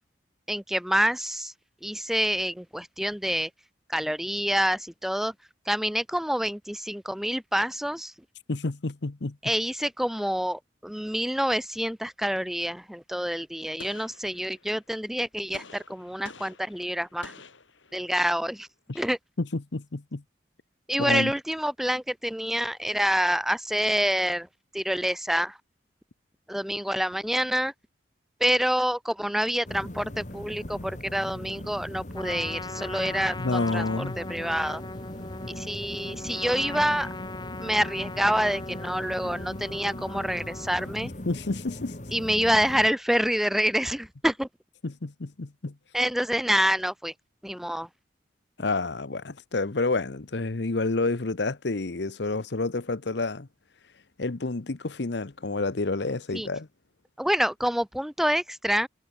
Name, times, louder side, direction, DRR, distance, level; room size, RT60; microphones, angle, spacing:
voice 1, 0.5-1.5 1.8-3.5 3.9-5.3 5.7-8.1 9.4-17.3 17.9-18.7 18.9-19.2 20.9-24.5 24.7-25.6 26.5-27.7 28.4-33.9 34.2-34.8 35.5-37.1 37.6-41.1 42.1-44.5 45.9-47.1 47.4-47.9 56.3-56.5 57.2-58.9, equal, ahead, 0.5 m, -27 dB
voice 2, 8.5-9.4 18.9-19.0 19.4-20.2 21.0-21.3 33.4-34.2 41.3-42.0 44.8-45.7 48.6-53.5 54.2-56.7, left 3 dB, 65° left, 0.9 m, -29 dB
Gunshot gunfire, 13.8-14.9 15.5-18.3, left 4 dB, 80° left, 4.7 m, -49 dB
sound 1, 29.6-42.9, left 1 dB, 40° left, 1.9 m, -39 dB
Trumpet, 32.1-40.9, left 2 dB, 20° left, 2.5 m, -40 dB
head